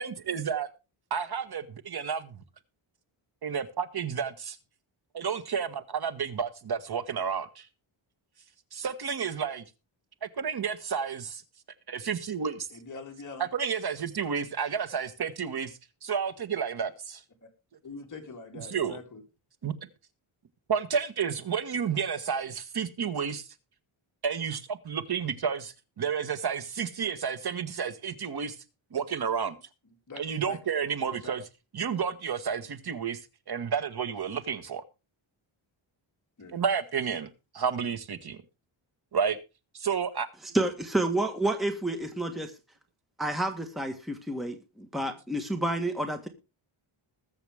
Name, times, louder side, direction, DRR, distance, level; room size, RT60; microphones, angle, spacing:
voice 1, 0.0-0.7 1.1-2.4 3.4-4.6 5.1-7.7 8.7-9.6 10.2-11.4 11.9-12.7 13.4-15.7 16.0-17.2 18.5-19.0 19.6-19.7 20.7-23.5 24.2-28.5 28.9-29.6 30.2-31.4 31.7-33.2 33.5-34.8 36.5-37.3 37.5-38.4 39.1-39.4 39.7-40.3, right 6 dB, 50° right, 11 dB, 1.5 m, -31 dB
voice 2, 12.7-13.5 17.8-19.2 30.1-30.6 31.0-31.4 36.4-36.6, left 3 dB, 35° left, 2 dB, 3.4 m, -43 dB
voice 3, 40.5-42.5 43.2-46.3, right 1 dB, ahead, 6 dB, 1.4 m, -29 dB
21.0 x 7.2 x 3.5 m, 0.29 s
wide cardioid pair, 155°, 50 cm